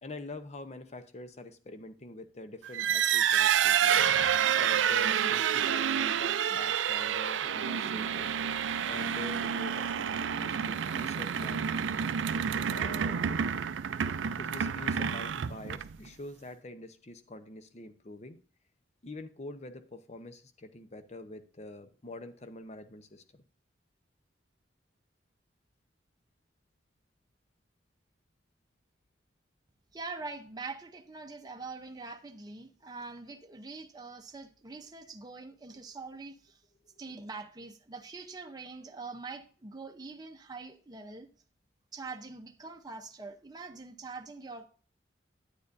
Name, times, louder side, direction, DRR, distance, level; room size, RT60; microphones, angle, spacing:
voice 1, 0.0-4.1 4.5-8.3 8.9-11.7 12.7-13.3 14.4-18.4 19.0-23.4, left 2 dB, 35° left, 10 dB, 0.7 m, -45 dB
sound 1, 2.6-16.1, right 8 dB, 80° right, 0.4 m, -29 dB
voice 2, 29.9-36.6 37.0-41.3 41.9-44.6, right 3 dB, 20° right, 4 dB, 0.7 m, -44 dB
9.6 x 9.3 x 2.6 m, 0.40 s
head